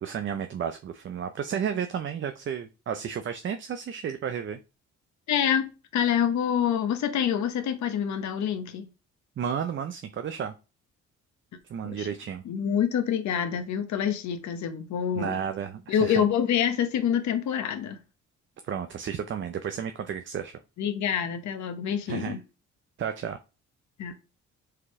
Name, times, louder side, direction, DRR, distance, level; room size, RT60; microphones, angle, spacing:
voice 1, 0.0-4.6 9.4-10.5 11.7-12.4 15.2-16.2 18.7-20.5 22.1-22.3 23.0-23.4, right 8 dB, 40° right, 0.5 m, -32 dB
voice 2, 5.3-8.9 11.8-12.1 12.4-15.4 15.9-18.0 20.8-22.4 24.0-24.1, left 8 dB, 70° left, 0.9 m, -26 dB
4.8 x 3.1 x 3.6 m
cardioid pair, 90°, 30 cm